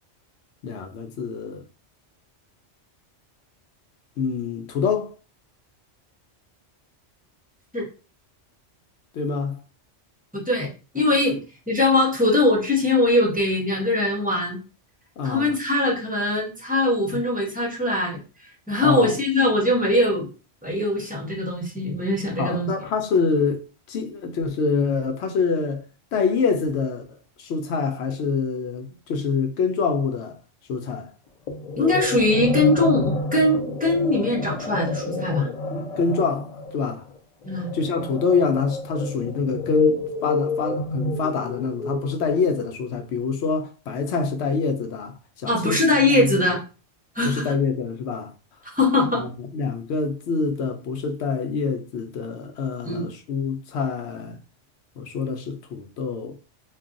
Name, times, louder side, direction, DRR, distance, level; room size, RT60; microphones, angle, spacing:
voice 1, 0.6-1.6 4.2-5.1 9.1-9.6 15.2-15.5 18.8-19.2 22.4-25.8 26.1-27.0 27.4-30.4 30.7-31.1 35.7-37.0 37.7-45.8 46.2-46.4 47.2-48.3 49.2-54.4 55.0-56.4, left 5 dB, 70° left, 0.8 m, -26 dB
voice 2, 10.3-14.6 15.2-18.2 18.7-20.3 20.6-22.7 31.8-35.5 37.4-37.7 45.5-46.6 47.1-47.5 48.7-49.3 52.8-53.1, left 2 dB, 10° right, 0.6 m, -21 dB
sound 1, 31.5-42.8, left 3 dB, 50° left, 0.5 m, -29 dB
2.4 x 2.2 x 3.7 m
omnidirectional pair, 1.2 m